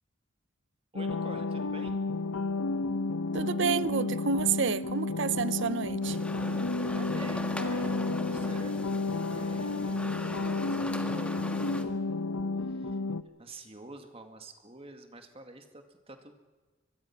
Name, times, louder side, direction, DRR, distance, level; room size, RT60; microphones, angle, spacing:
voice 1, 0.9-2.0 6.9-10.2 10.7-12.2 12.6-13.0 13.4-16.3, right 2 dB, 25° right, 2.2 m, -49 dB
sound 1, 1.0-13.2, left 3 dB, 90° left, 0.9 m, -31 dB
voice 2, 3.3-6.2, right 6 dB, 55° right, 0.7 m, -29 dB
sound 2, 6.0-11.8, left 1 dB, 5° left, 1.6 m, -40 dB
24.0 x 22.0 x 6.0 m
head